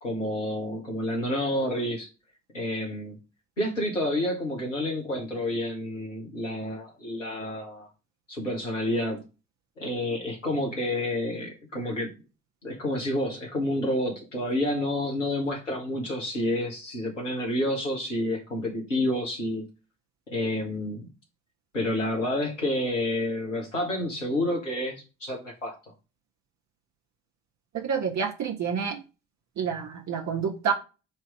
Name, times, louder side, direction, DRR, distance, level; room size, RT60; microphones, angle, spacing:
voice 1, 0.0-2.1 2.5-3.2 3.6-7.9 8.3-9.2 9.8-12.1 12.6-19.6 20.3-21.1 21.7-25.7, left 1 dB, 85° left, 1.4 m, -29 dB
voice 2, 27.7-29.0 29.6-30.7, right 7 dB, 50° right, 1.4 m, -28 dB
7.2 x 3.0 x 4.8 m
figure-of-eight pair, 40°, 36 cm